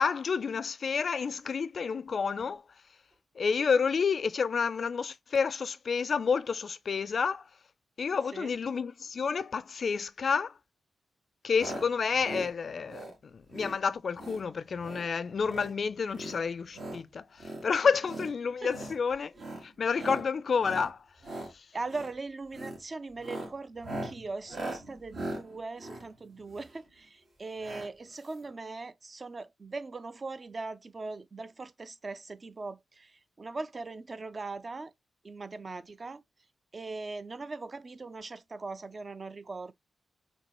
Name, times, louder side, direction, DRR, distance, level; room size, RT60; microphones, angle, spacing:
voice 1, 0.0-2.6 3.4-7.4 8.0-10.5 11.4-19.3 19.6-21.0, left 5 dB, 60° left, 0.3 m, -29 dB
sound 1, 11.6-11.9 12.1-12.5 12.9-13.2 13.5-13.8 14.1-14.4 14.7-15.1 15.4-15.7 16.1-17.0 17.4-17.6 18.0-18.3 18.7-19.0 19.4-19.6 20.0-20.3 20.6-20.9 21.2-21.5 21.9-22.1 22.5-22.8 23.1-26.8 27.6-27.9 28.2-28.3 28.4-28.5, right 1 dB, 70° right, 1.7 m, -40 dB
voice 2, 21.7-34.9 35.2-36.2 36.7-39.7, right 3 dB, 45° right, 0.4 m, -40 dB
4.5 x 2.7 x 2.9 m
supercardioid pair, 50°, 0 cm